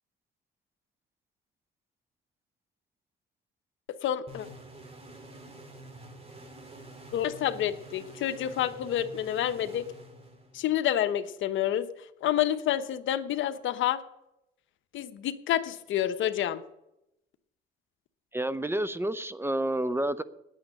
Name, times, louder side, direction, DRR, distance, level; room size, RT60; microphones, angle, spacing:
voice 1, 4.0-4.5 7.1-9.9 10.5-11.9 12.2-14.0 14.9-16.6, left 11 dB, 80° left, 10 dB, 0.9 m, -28 dB
sound 1, 4.3-10.8, right 2 dB, 30° right, 2.8 m, -48 dB
voice 2, 18.3-20.2, right 1 dB, 10° right, 14 dB, 0.6 m, -29 dB
9.8 x 8.8 x 9.6 m, 0.87 s
cardioid pair, 90°, 20 cm